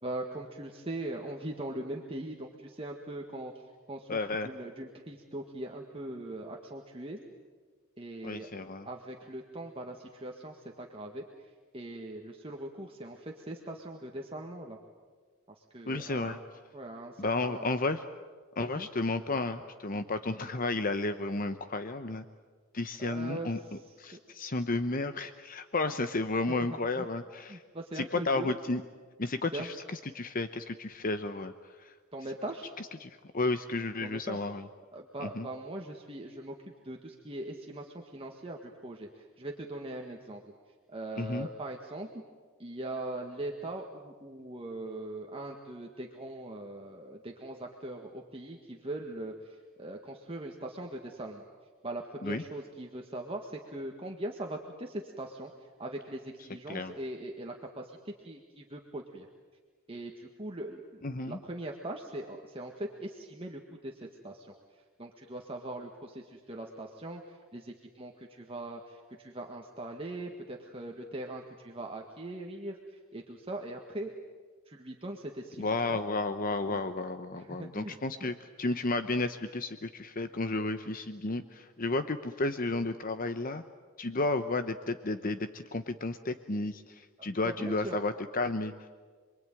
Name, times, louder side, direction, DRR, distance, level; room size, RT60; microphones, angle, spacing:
voice 1, 0.0-3.5 3.9-7.2 8.0-8.5 8.8-14.8 15.5-16.4 16.7-17.7 18.7-18.9 23.0-23.8 24.1-24.2 26.7-27.1 27.5-28.6 29.5-29.7 32.1-32.7 34.0-34.4 34.9-36.6 36.8-40.4 40.9-42.1 42.6-51.4 51.8-55.5 55.8-59.3 59.9-64.5 65.0-74.1 74.7-76.0 76.7-76.8 77.3-78.3 87.2-88.0, right 1 dB, 25° right, 1 dB, 1.8 m, -41 dB
voice 2, 4.1-4.5 8.2-8.9 15.9-16.4 17.2-18.0 18.6-22.2 22.7-23.6 24.0-27.6 27.9-28.8 29.2-31.5 31.8-31.9 32.8-34.7 35.2-35.5 41.2-41.5 52.2-52.4 56.7-56.9 61.0-61.4 75.6-83.6 84.0-88.9, left 2 dB, 40° left, 10 dB, 0.9 m, -32 dB
27.5 x 22.5 x 9.1 m, 1.5 s
head